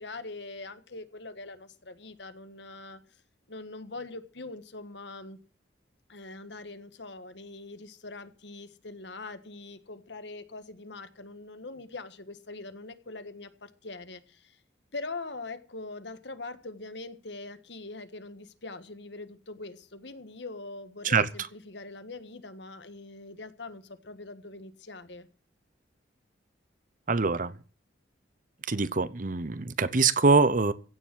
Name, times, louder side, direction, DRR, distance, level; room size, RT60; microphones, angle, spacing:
voice 1, 0.0-3.0 3.5-5.4 6.1-14.6 14.9-25.3, left 3 dB, 65° left, 1.5 m, -42 dB
voice 2, 27.1-27.6 28.7-30.7, right 4 dB, 45° right, 0.8 m, -24 dB
16.0 x 7.2 x 7.6 m
head